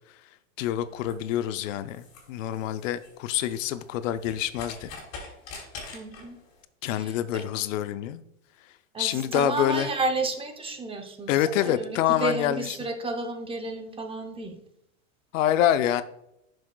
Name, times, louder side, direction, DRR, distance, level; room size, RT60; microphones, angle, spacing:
voice 1, 0.6-4.9 6.8-8.2 9.0-9.9 11.3-12.7 15.3-16.0, left 11 dB, 70° left, 0.6 m, -26 dB
sound 1, 0.8-6.6, left 4 dB, 40° left, 2.8 m, -45 dB
voice 2, 5.9-6.4 6.9-7.5 8.9-14.6, right 3 dB, 15° right, 0.7 m, -32 dB
10.5 x 6.3 x 2.3 m
supercardioid pair, 130°, 40 cm